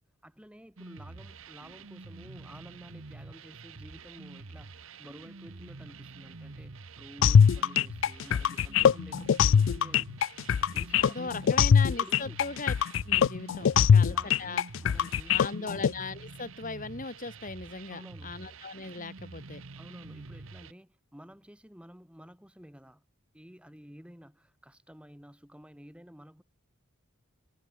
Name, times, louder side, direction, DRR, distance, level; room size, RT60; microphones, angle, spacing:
voice 1, 0.2-10.1 10.7-11.6 12.0-12.4 13.8-15.8 17.9-18.3 19.8-23.0 23.3-26.4, equal, 5° right, 2.8 m, -51 dB
sound 1, 0.8-20.7, right 3 dB, 75° right, 1.2 m, -47 dB
sound 2, 7.2-15.9, left 7 dB, 65° left, 0.3 m, -22 dB
voice 2, 11.0-12.7 13.0-14.6 15.3-19.6, left 3 dB, 40° left, 2.7 m, -38 dB
head